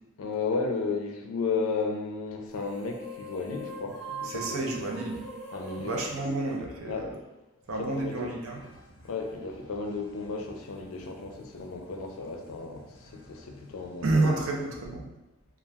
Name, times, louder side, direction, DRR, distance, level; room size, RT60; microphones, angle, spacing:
voice 1, 0.2-4.8 5.5-5.9 6.8-7.1 7.8-8.3 9.0-14.3, left 4 dB, 75° left, 3 dB, 0.4 m, -34 dB
sound 1, 2.5-7.2, right 1 dB, 50° right, 1.0 m, -42 dB
voice 2, 4.2-5.2 5.8-7.2 7.7-8.6 14.0-15.0, right 2 dB, 80° right, 0 dB, 0.5 m, -29 dB
sound 2, 7.6-14.8, equal, 25° left, 0.8 m, -54 dB
2.3 x 2.2 x 3.3 m, 1.0 s
head